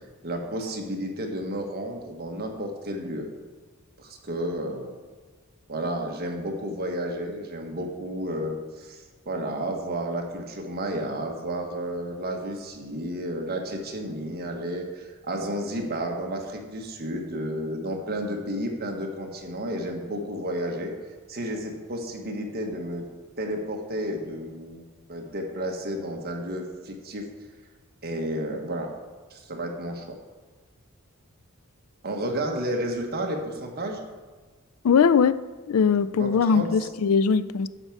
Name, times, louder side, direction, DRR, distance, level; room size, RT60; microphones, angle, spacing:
voice 1, 0.2-3.3 4.0-4.9 5.7-20.9 21.3-23.1 23.4-27.2 28.0-28.9 29.3-30.0 32.0-34.0 36.2-36.7, right 1 dB, 45° right, 1.4 m, -32 dB
voice 2, 34.8-35.4 35.7-37.7, left 6 dB, 70° left, 0.4 m, -20 dB
9.9 x 4.6 x 7.1 m
head